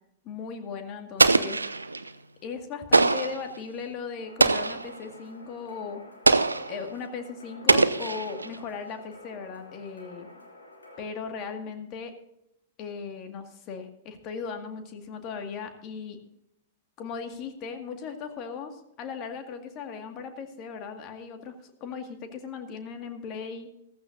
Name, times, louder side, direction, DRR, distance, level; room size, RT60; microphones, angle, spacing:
voice 1, 0.2-1.6 2.4-6.0 6.7-10.3 11.0-12.1 12.8-16.2 17.0-23.7, left 5 dB, 35° left, 5 dB, 2.1 m, -37 dB
Explosion, 1.2-2.1 2.9-3.5 4.4-4.9 6.3-6.8 7.7-8.6, right 3 dB, 85° right, 0.6 m, -22 dB
sound 1, 4.2-11.0, left 2 dB, 85° left, 2.9 m, -50 dB
15.0 x 15.0 x 2.7 m, 0.80 s
figure-of-eight pair, 100°, 0 cm